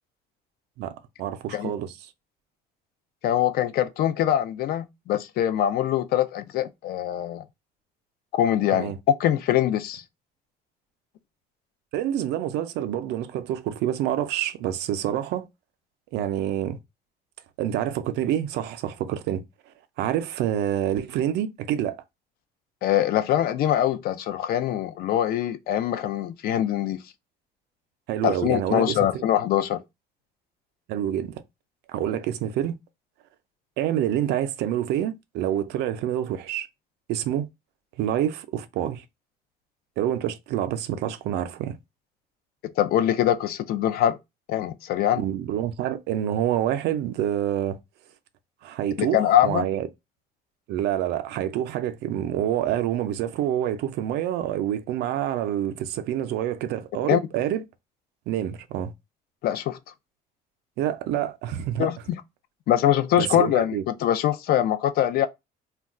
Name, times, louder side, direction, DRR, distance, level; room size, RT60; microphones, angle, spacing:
voice 1, 0.8-2.1 8.7-9.0 11.9-15.5 16.1-16.8 17.6-19.4 20.0-22.0 28.1-29.2 30.9-31.4 31.9-32.8 33.8-36.7 37.1-37.5 38.0-39.0 40.0-41.8 45.2-47.8 48.6-49.9 50.7-57.6 58.3-58.9 60.8-61.9 63.2-63.8, right 11 dB, 80° right, 0.4 m, -27 dB
voice 2, 3.2-7.4 8.3-8.9 9.2-10.0 22.8-27.0 28.2-29.8 42.8-44.2 44.5-45.2 49.0-49.7 57.0-57.2 59.4-59.8 61.8-62.2 62.7-65.3, left 11 dB, 65° left, 0.4 m, -23 dB
2.3 x 2.2 x 3.7 m
cardioid pair, 110°, 17 cm